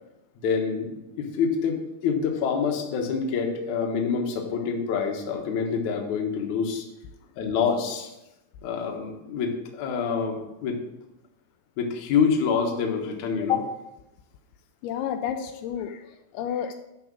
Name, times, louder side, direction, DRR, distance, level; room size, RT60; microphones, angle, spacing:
voice 1, 0.4-6.9 7.4-8.1 8.6-10.8 11.8-13.7, left 6 dB, 60° left, 2 dB, 2.3 m, -26 dB
voice 2, 14.8-16.7, left 9 dB, 80° left, 6 dB, 2.6 m, -31 dB
12.0 x 4.9 x 6.3 m, 0.91 s
omnidirectional pair, 4.6 m